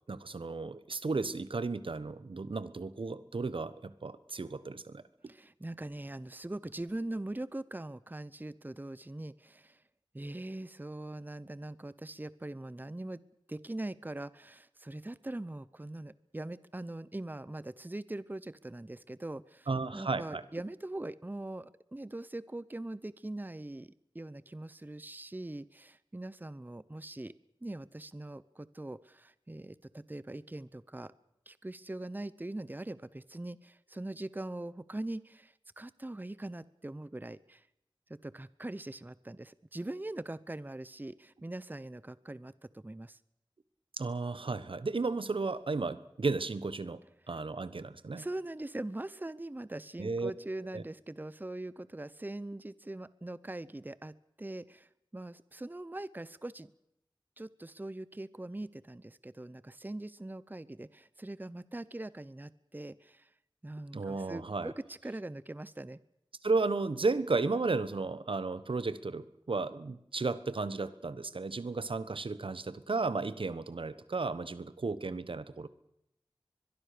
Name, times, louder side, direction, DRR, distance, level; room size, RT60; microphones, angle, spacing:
voice 1, 0.1-5.0 19.7-20.4 44.0-47.0 47.3-48.2 50.0-50.3 50.7-50.8 63.9-64.7 66.4-75.7, right 3 dB, 80° right, 15 dB, 1.2 m, -34 dB
voice 2, 5.3-9.8 10.1-13.2 13.5-27.3 27.6-31.1 31.5-37.7 38.1-43.2 47.2-47.3 48.2-56.7 57.4-63.3 63.6-66.0, right 1 dB, 20° right, 18 dB, 0.8 m, -42 dB
23.0 x 22.5 x 6.8 m, 0.80 s
wide cardioid pair, 60°, 9 cm